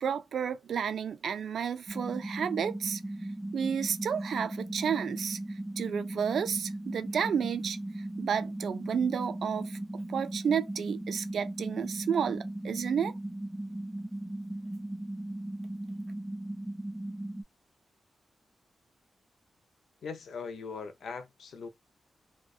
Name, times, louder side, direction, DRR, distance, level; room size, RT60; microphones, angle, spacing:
voice 1, 0.0-3.0 3.5-9.8 10.1-13.1, right 7 dB, 85° right, 0.3 m, -31 dB
sound 1, 1.9-17.4, right 1 dB, 5° left, 0.4 m, -38 dB
voice 2, 20.0-21.7, left 5 dB, 80° left, 0.4 m, -40 dB
2.6 x 2.1 x 2.3 m
wide cardioid pair, 175°, 0 cm